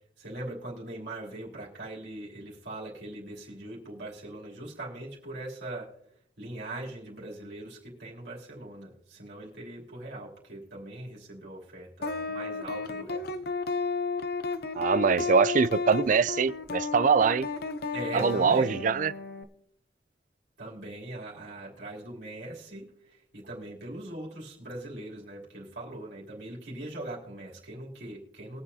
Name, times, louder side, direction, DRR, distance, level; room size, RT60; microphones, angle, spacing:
voice 1, 0.2-5.9 6.4-13.3 17.9-18.8 20.6-22.9 23.3-28.6, right 1 dB, 75° right, 3.1 m, -40 dB
sound 1, 12.0-19.4, left 4 dB, 60° left, 0.7 m, -33 dB
voice 2, 14.8-17.5 18.1-19.1, right 5 dB, 50° right, 0.4 m, -23 dB
22.0 x 7.9 x 2.8 m
head